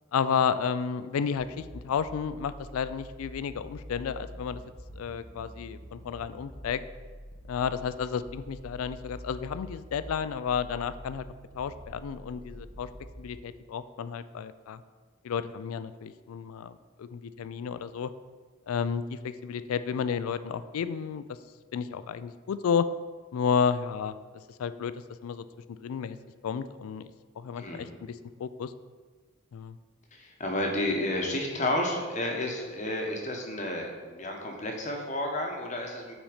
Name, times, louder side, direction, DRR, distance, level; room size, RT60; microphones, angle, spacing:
voice 1, 0.1-4.6 5.0-6.8 7.5-11.3 11.5-12.9 13.2-14.8 15.2-18.1 18.7-21.2 21.7-22.9 23.3-24.2 24.6-24.9 25.2-25.5 25.8-26.2 26.4-27.1 27.4-28.7 29.5-29.8, left 7 dB, 85° left, 13 dB, 0.3 m, -31 dB
sound 1, 1.4-13.3, equal, 65° right, 1.1 m, -46 dB
voice 2, 27.6-27.9 30.1-36.1, left 1 dB, 35° left, 1 dB, 0.9 m, -31 dB
5.9 x 4.2 x 4.9 m, 1.5 s
head